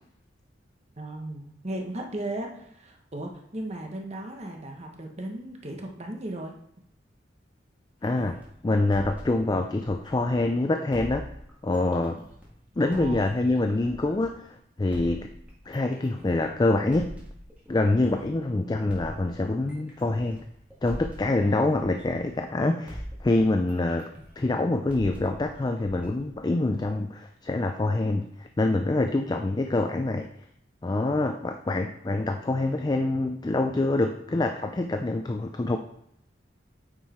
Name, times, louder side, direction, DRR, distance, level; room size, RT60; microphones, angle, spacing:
voice 1, 1.0-6.5 12.8-13.3 18.5-19.0, right 1 dB, 35° right, 2 dB, 1.1 m, -36 dB
voice 2, 8.0-11.2 11.6-12.2 12.8-15.3 15.7-17.1 17.7-20.4 20.8-24.1 24.4-30.3 30.8-35.8, left 2 dB, 20° left, 6 dB, 0.4 m, -26 dB
sound 1, 8.0-10.5 10.9-14.4 14.9-18.4 18.9-22.6 22.9-27.0, equal, 10° right, 1.9 m, -43 dB
8.9 x 4.7 x 4.3 m, 0.73 s
head